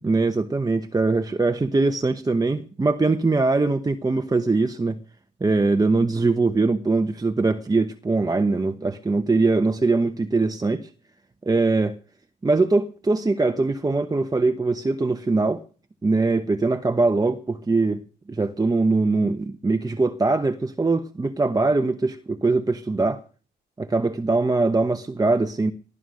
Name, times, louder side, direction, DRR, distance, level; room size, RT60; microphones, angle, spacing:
voice 1, 0.0-5.0 5.4-10.9 11.4-12.0 12.4-15.6 16.0-18.0 18.3-23.2 23.8-25.7, right 3 dB, 20° right, 1.0 m, -22 dB
18.5 x 11.0 x 6.3 m
cardioid pair, 90°, 20 cm